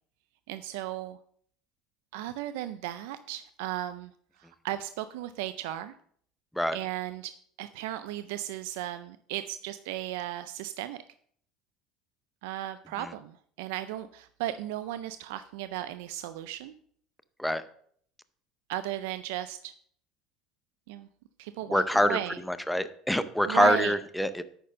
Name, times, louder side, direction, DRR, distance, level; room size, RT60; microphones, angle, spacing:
voice 1, 0.5-1.2 2.1-4.1 4.4-6.0 6.7-7.3 7.6-11.0 12.4-16.7 18.7-19.7 20.9-21.1 21.4-22.4 23.4-23.9, right 13 dB, 85° right, 12 dB, 0.4 m, -35 dB
voice 2, 21.7-22.2 22.5-24.4, left 1 dB, 5° left, 12 dB, 0.6 m, -25 dB
10.0 x 4.4 x 5.3 m, 0.62 s
supercardioid pair, 105°, 0 cm